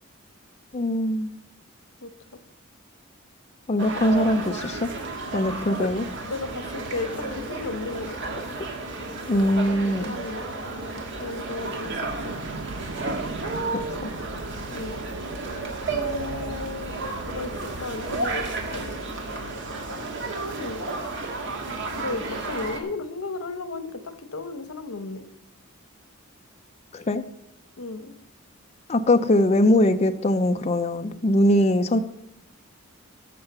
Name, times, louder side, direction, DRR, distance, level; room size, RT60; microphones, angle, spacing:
voice 1, 0.7-1.3 3.7-4.9 5.3-6.0 9.3-10.2 26.9-27.2 28.9-32.0, left 1 dB, 30° left, 8 dB, 0.5 m, -21 dB
sound 1, 3.8-22.8, right 3 dB, 60° right, 1.7 m, -32 dB
voice 2, 6.2-8.4 10.1-10.4 11.2-12.4 14.7-15.0 15.9-18.9 20.5-20.9 21.9-25.3 27.8-28.1, left 3 dB, 85° left, 10 dB, 1.0 m, -34 dB
sound 2, 11.8-19.0, right 2 dB, 80° right, 0.7 m, -40 dB
13.0 x 5.6 x 6.7 m, 0.85 s
head